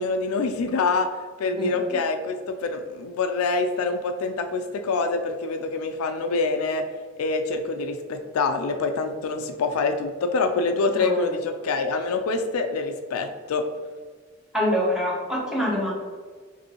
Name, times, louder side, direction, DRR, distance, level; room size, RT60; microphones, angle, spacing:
voice 1, 0.0-6.8 7.2-13.7, left 3 dB, 85° left, 7 dB, 0.4 m, -26 dB
voice 2, 10.9-11.3 14.5-15.9, equal, 5° right, -6 dB, 1.1 m, -25 dB
5.1 x 2.7 x 2.8 m, 1.5 s
head